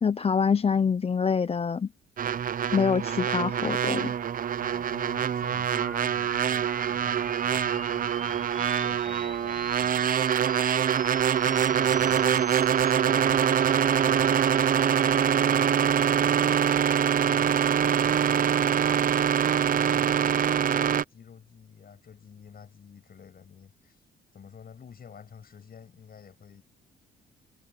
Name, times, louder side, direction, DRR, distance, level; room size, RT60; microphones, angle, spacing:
voice 1, 0.0-1.9 2.7-4.1, left 6 dB, 30° left, 0.7 m, -25 dB
sound 1, 2.2-21.0, right 8 dB, 45° right, 0.7 m, -24 dB
voice 2, 4.6-10.1 11.4-16.8 17.2-19.1 19.5-24.0 24.3-26.6, left 7 dB, 50° left, 6.7 m, -49 dB
sound 2, 5.5-12.9, equal, ahead, 6.9 m, -45 dB
cardioid pair, 90°, 20 cm